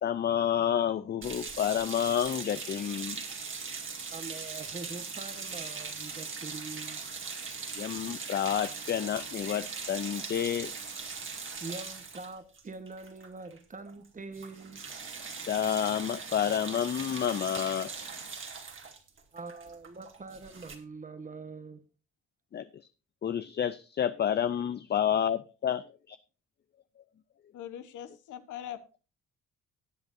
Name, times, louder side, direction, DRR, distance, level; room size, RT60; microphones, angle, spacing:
voice 1, 0.0-3.2 7.7-10.7 15.5-17.9 22.5-22.7 23.2-26.2, left 9 dB, 35° left, 0.4 m, -29 dB
sound 1, 1.2-13.6 13.9-14.1 14.3-20.8, right 5 dB, 40° right, 2.2 m, -40 dB
voice 2, 4.1-7.0 11.6-14.8 19.3-21.8, right 3 dB, 25° right, 1.2 m, -44 dB
voice 3, 27.5-29.0, left 10 dB, 80° left, 1.1 m, -42 dB
19.0 x 8.0 x 2.6 m
cardioid pair, 90°, 30 cm